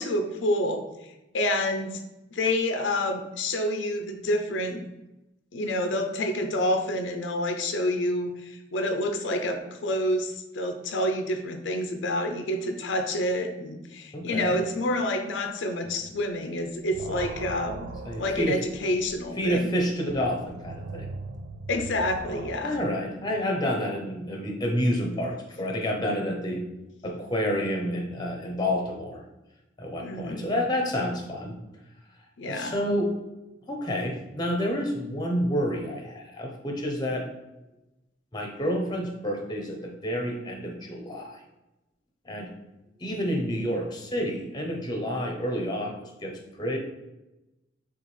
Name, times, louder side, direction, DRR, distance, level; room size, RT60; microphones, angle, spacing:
voice 1, 0.0-2.0 2.3-4.8 5.5-19.7 21.7-22.8 30.0-30.5 32.4-32.8, left 1 dB, 80° left, 5 dB, 0.5 m, -28 dB
voice 2, 14.1-14.6 18.0-18.6 19.4-21.1 22.6-26.6 27.0-29.2 29.8-31.6 32.4-33.1 33.7-37.3 38.3-41.4 42.2-42.5 43.0-46.8, equal, 25° left, 1 dB, 0.7 m, -29 dB
sound 1, 15.9-16.3 16.6-22.5, right 3 dB, 65° right, 0.4 m, -40 dB
6.7 x 2.4 x 3.2 m, 0.98 s
head